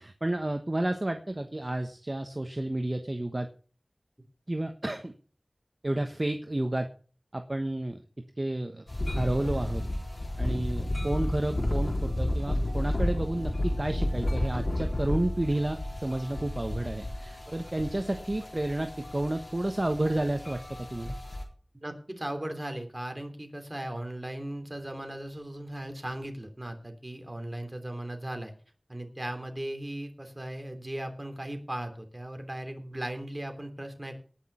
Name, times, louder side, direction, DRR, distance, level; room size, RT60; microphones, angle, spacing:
voice 1, 0.0-3.5 4.5-5.1 5.8-6.9 7.3-8.0 8.4-9.8 10.4-21.2, right 1 dB, 45° right, 6 dB, 1.2 m, -31 dB
sound 1, 8.9-21.4, left 1 dB, 60° left, 3.9 m, -32 dB
voice 2, 21.8-28.5 28.9-34.2, right 1 dB, 30° right, 5 dB, 3.2 m, -37 dB
18.5 x 6.3 x 5.6 m, 0.40 s
wide cardioid pair, 40°, 0 cm